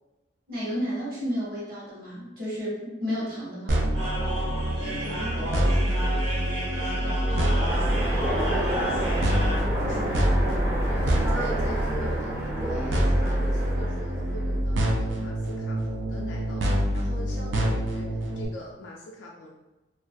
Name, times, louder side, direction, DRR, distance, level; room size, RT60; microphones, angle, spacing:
voice 1, 0.5-3.8, equal, 55° right, -6 dB, 0.9 m, -31 dB
sound 1, 3.7-18.4, equal, 90° right, 0.4 m, -26 dB
sound 2, 3.9-9.5, equal, 70° right, 1.2 m, -33 dB
voice 2, 4.8-8.9 9.8-10.3 10.9-19.5, left 1 dB, 80° left, -2 dB, 0.3 m, -42 dB
Train, 7.7-14.6, right 1 dB, 15° right, 0.4 m, -30 dB
2.3 x 2.1 x 2.5 m, 1.0 s
head